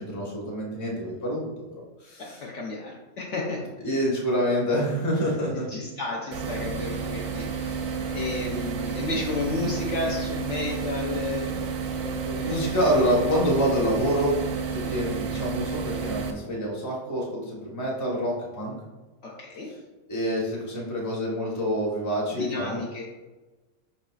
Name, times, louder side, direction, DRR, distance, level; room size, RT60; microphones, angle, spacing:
voice 1, 0.0-2.4 3.8-5.6 7.8-8.0 12.4-14.4 14.7-18.7 20.1-22.8, equal, 15° left, -4 dB, 0.8 m, -27 dB
voice 2, 2.2-3.7 5.3-5.4 5.7-11.6 12.0-12.6 19.2-19.7 22.3-23.0, left 3 dB, 65° left, -2 dB, 0.8 m, -32 dB
sound 1, 6.3-16.3, right 6 dB, 85° right, 1.1 m, -31 dB
5.1 x 4.0 x 2.3 m, 1.2 s
omnidirectional pair, 1.6 m